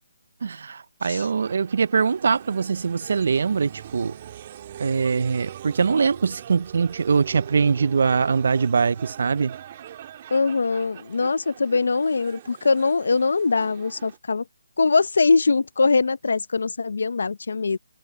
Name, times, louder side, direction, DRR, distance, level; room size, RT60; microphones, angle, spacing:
voice 1, 0.4-4.2 4.8-9.6, right 5 dB, 60° right, 0.4 m, -22 dB
sound 1, 1.0-14.2, right 11 dB, 35° right, 1.9 m, -42 dB
voice 2, 10.3-14.4 14.8-17.8, left 4 dB, 75° left, 0.8 m, -22 dB
hypercardioid pair, 160°, 0 cm